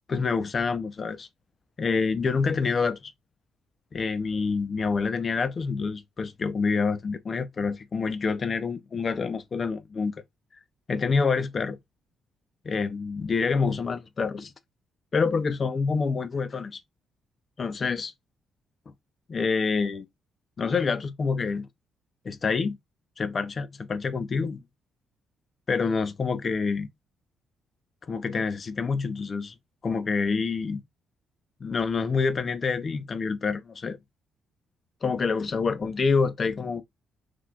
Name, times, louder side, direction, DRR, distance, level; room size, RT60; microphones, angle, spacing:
voice 1, 0.1-1.3 1.8-3.1 3.9-10.2 10.9-11.8 12.6-14.5 15.1-16.8 17.6-18.1 19.3-20.1 20.6-21.7 22.2-22.8 23.2-24.6 25.7-26.9 28.0-29.5 29.8-30.8 31.6-34.0 35.0-36.8, left 5 dB, 40° left, 0.5 m, -27 dB
3.9 x 3.1 x 2.3 m
cardioid pair, 90°, 0 cm